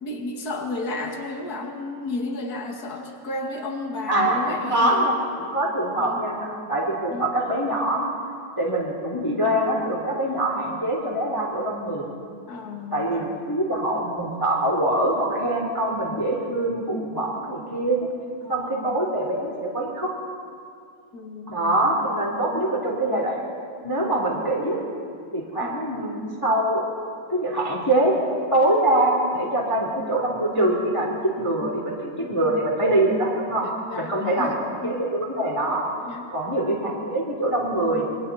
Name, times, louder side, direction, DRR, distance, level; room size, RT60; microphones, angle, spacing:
voice 1, 0.0-5.1 6.0-6.2 7.1-7.3 12.5-13.3 18.4-19.0 21.1-21.8 22.4-22.6 25.6-25.8 32.2-32.5 33.6-34.5 34.8-35.0 36.0-36.3, left 2 dB, 35° left, 2 dB, 1.9 m, -33 dB
voice 2, 4.1-8.1 8.6-12.1 12.9-18.1 18.5-20.2 21.5-23.4 23.8-24.8 25.3-26.8 27.3-28.1 28.5-33.7 34.0-34.5 34.8-35.9 36.3-38.1, right 1 dB, 5° left, -2 dB, 2.6 m, -24 dB
29.0 x 22.5 x 4.2 m, 2.3 s
omnidirectional pair, 3.8 m